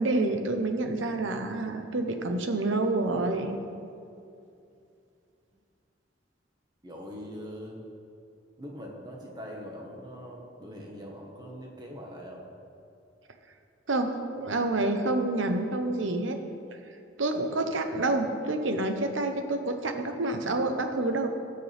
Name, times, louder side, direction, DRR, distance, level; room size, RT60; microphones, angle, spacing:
voice 1, 0.0-3.6 13.9-16.4 17.2-21.3, right 2 dB, 85° right, 6 dB, 1.0 m, -28 dB
voice 2, 6.8-7.8 8.6-12.5, equal, 20° right, -1 dB, 1.4 m, -42 dB
18.5 x 6.8 x 3.5 m, 2.6 s
head